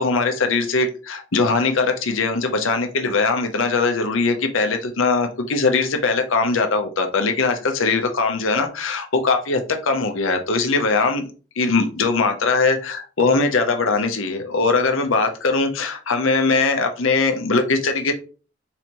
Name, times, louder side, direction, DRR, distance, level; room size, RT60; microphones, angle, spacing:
voice 1, 0.0-11.2 11.6-18.1, left 3 dB, 75° left, 0.8 m, -21 dB
4.0 x 3.0 x 4.3 m
head